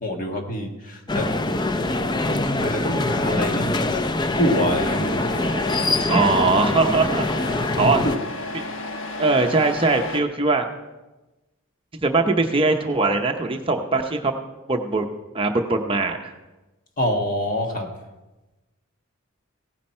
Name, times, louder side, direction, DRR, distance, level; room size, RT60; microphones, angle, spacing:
voice 1, 0.0-1.3 2.2-5.2 5.4-5.8 6.1-6.2 7.8-8.2 8.6-8.7 17.0-17.9, equal, 40° left, 3 dB, 1.5 m, -26 dB
sound 1, 1.1-8.2, left 2 dB, 20° left, 0.4 m, -24 dB
Truck, 4.3-10.2, left 2 dB, 65° left, 1.1 m, -32 dB
voice 2, 6.1-7.3 7.8-8.0 8.5-8.8 9.2-10.7 12.0-14.3 14.7-15.1 15.3-16.3, right 3 dB, 25° right, 4 dB, 0.8 m, -21 dB
16.5 x 10.0 x 4.4 m, 1.1 s
head